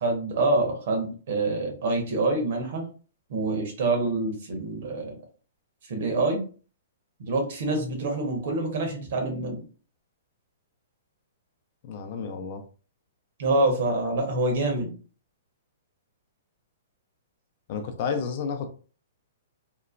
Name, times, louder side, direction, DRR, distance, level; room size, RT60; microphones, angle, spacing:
voice 1, 0.0-2.9 3.3-5.2 5.9-6.5 7.2-9.6 13.4-14.9, right 2 dB, 60° right, 2 dB, 1.0 m, -26 dB
voice 2, 11.8-12.6 17.7-18.7, left 6 dB, 40° left, 6 dB, 0.5 m, -31 dB
2.9 x 2.1 x 2.5 m, 0.37 s
hypercardioid pair, 160°, 0 cm